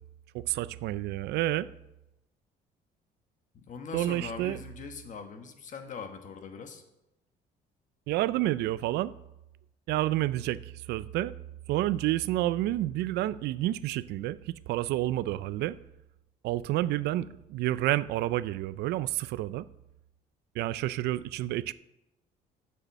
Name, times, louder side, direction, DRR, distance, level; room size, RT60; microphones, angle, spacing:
voice 1, 0.5-1.7 3.9-4.6 8.1-9.1 9.9-11.3 11.7-15.8 16.4-19.6 20.6-21.7, right 15 dB, 75° right, 0.4 m, -29 dB
voice 2, 3.5-6.8, left 5 dB, 50° left, 1.4 m, -41 dB
8.1 x 6.4 x 7.2 m
cardioid pair, 110°, 17 cm